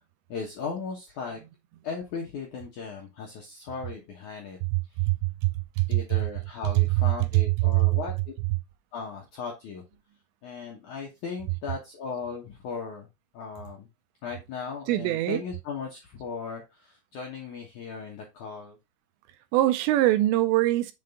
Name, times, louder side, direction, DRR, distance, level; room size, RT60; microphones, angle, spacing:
voice 1, 0.3-1.4 1.8-4.6 5.9-8.3 8.9-9.8 10.4-13.1 13.3-13.9 14.2-18.8, left 5 dB, 85° left, 1.7 m, -37 dB
voice 2, 4.7-5.3 5.8-6.0 6.9-7.0 7.3-7.9 14.9-15.4 19.5-20.9, right 17 dB, 85° right, 2.6 m, -23 dB
7.4 x 4.0 x 3.5 m
omnidirectional pair, 5.4 m